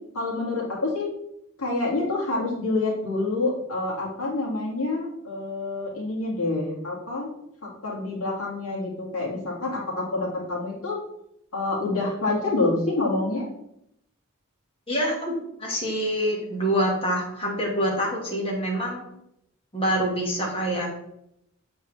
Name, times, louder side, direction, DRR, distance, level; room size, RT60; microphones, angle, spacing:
voice 1, 0.1-1.1 1.6-7.3 7.6-11.0 11.5-13.5, left 2 dB, 80° left, -4 dB, 2.2 m, -27 dB
voice 2, 14.9-19.0 19.7-20.9, equal, 25° left, -2 dB, 1.8 m, -26 dB
7.5 x 4.5 x 3.3 m, 0.77 s
head